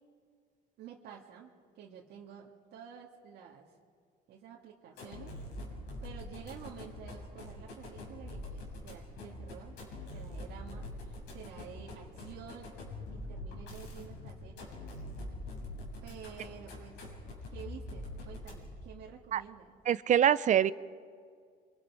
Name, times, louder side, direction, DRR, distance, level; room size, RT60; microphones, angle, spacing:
voice 1, 0.8-1.5 1.8-3.7 4.3-5.4 6.0-9.8 10.1-12.7 13.1-14.8 16.0-17.1 17.5-19.8, right 8 dB, 80° right, -2 dB, 2.1 m, -50 dB
sound 1, 4.9-18.9, left 1 dB, 90° left, 6.6 m, -44 dB
voice 2, 19.9-20.7, right 10 dB, 45° right, 16 dB, 0.6 m, -24 dB
29.0 x 25.0 x 4.9 m, 2.1 s
cardioid pair, 110°, 17 cm